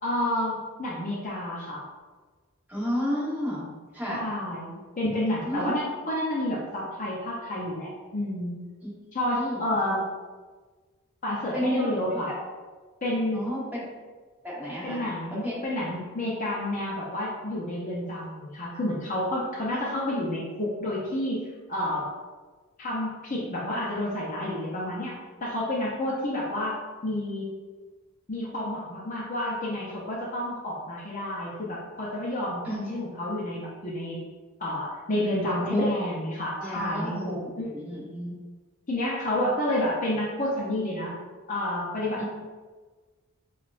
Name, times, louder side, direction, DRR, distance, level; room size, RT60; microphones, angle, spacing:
voice 1, 0.0-1.8 4.1-8.6 9.1-10.0 11.2-12.3 13.0-13.5 14.8-22.1 22.8-26.8 27.0-27.5 28.3-34.2 34.6-37.8 38.9-41.2 41.5-42.2, left 1 dB, 35° left, -5 dB, 0.6 m, -30 dB
voice 2, 2.7-3.7 3.9-4.3 5.4-5.7 8.8-8.9 9.3-9.6 11.5-12.2 13.3-13.8 14.4-15.0 15.4-15.6 19.9-20.4 32.6-32.9 35.7-35.9 36.6-38.4 42.2-42.3, equal, 5° right, -8 dB, 1.0 m, -32 dB
5.3 x 2.3 x 2.4 m, 1.4 s
head